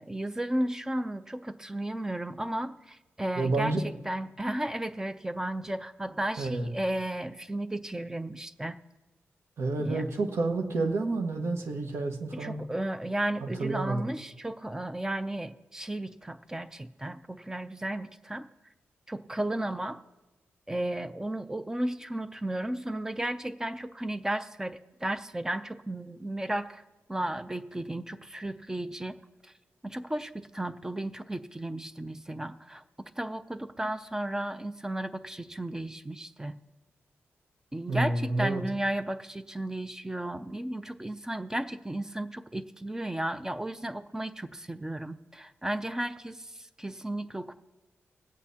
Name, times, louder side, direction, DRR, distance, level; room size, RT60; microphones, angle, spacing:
voice 1, 0.0-8.8 9.8-10.0 12.3-18.5 19.1-20.0 20.7-26.8 27.1-29.2 29.4-29.5 29.8-32.8 33.2-36.6 37.7-47.5, right 1 dB, 10° right, 10 dB, 0.4 m, -34 dB
voice 2, 3.4-3.8 6.4-6.7 9.6-12.6 13.4-14.0 37.9-38.6, right 3 dB, 70° right, 4 dB, 1.4 m, -29 dB
22.5 x 8.3 x 2.8 m, 1.1 s
wide cardioid pair, 120°, 5 cm